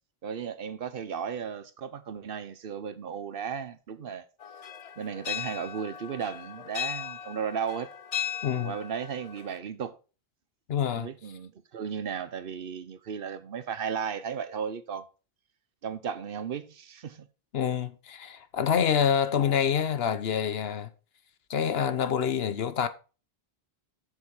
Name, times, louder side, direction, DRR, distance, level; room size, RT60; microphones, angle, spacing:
voice 1, 0.2-4.2 5.0-7.9 8.5-9.9 10.9-15.0 15.8-17.3, right 7 dB, 65° right, 0.9 m, -35 dB
sound 1, 4.4-9.6, left 9 dB, 55° left, 0.4 m, -37 dB
voice 2, 8.4-8.7 10.7-11.1 17.5-20.9 21.5-22.9, left 8 dB, 75° left, 1.1 m, -27 dB
7.2 x 6.6 x 4.7 m
omnidirectional pair, 1.0 m